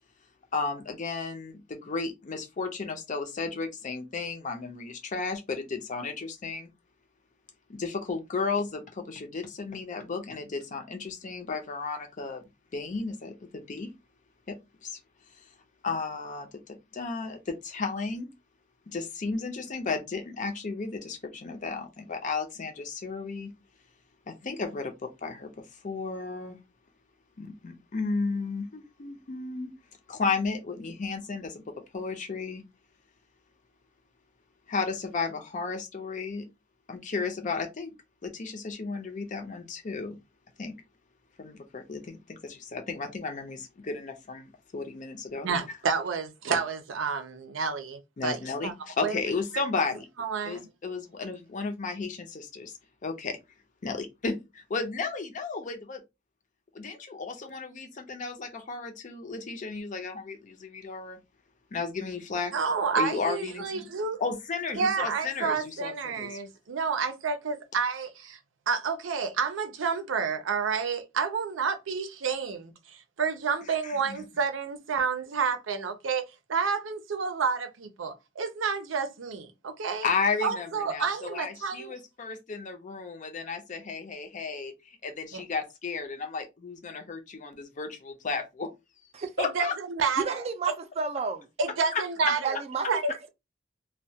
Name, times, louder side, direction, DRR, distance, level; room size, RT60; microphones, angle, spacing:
voice 1, 0.5-6.7 7.7-12.4 12.7-13.9 14.8-15.0 15.8-18.3 18.9-23.5 24.4-25.5 25.8-26.6 27.4-29.7 30.1-31.6 31.9-32.6 34.7-36.5 36.9-37.9 38.2-40.2 40.6-40.7 41.4-44.5 44.7-45.5 48.2-50.1 50.4-52.7 53.0-53.4 53.8-56.0 56.7-61.2 61.7-62.5 63.0-63.9 64.2-66.3 73.8-74.2 80.0-88.7 89.4-89.7 91.9-92.0, left 4 dB, 40° left, 0.5 m, -33 dB
voice 2, 45.4-48.7 49.0-49.2 50.2-50.7 62.5-64.2 64.7-68.4 68.7-76.2 76.5-80.1 80.4-81.9 85.3-85.4 89.4-90.7 91.6-92.6 92.9-93.3, right 5 dB, 90° right, 0.5 m, -30 dB
voice 3, 90.2-91.5 92.4-92.9, right 5 dB, 35° right, 0.4 m, -31 dB
2.2 x 2.1 x 2.7 m
head